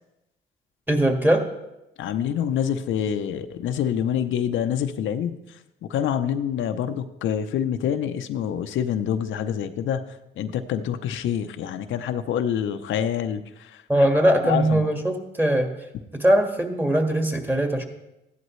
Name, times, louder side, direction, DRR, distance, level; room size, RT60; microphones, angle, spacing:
voice 1, 0.9-1.4 13.9-15.7 16.2-17.8, right 1 dB, 10° right, 4 dB, 1.7 m, -21 dB
voice 2, 2.0-5.4 5.8-10.0 10.4-13.4 14.4-14.9, left 9 dB, 75° left, 7 dB, 0.7 m, -26 dB
14.5 x 11.0 x 3.2 m, 0.93 s
cardioid pair, 90°, 20 cm